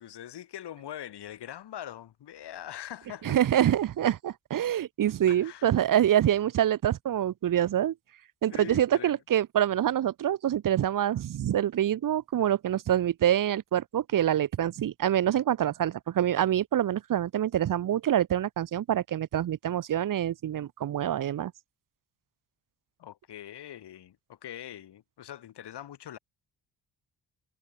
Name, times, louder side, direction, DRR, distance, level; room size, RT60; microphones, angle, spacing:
voice 1, 0.0-3.4 5.3-5.7 8.5-9.2 23.0-26.2, left 11 dB, 90° left, 5.6 m, -43 dB
voice 2, 3.2-7.9 8.4-21.5, right 11 dB, 55° right, 0.7 m, -26 dB
cardioid pair, 100°, 39 cm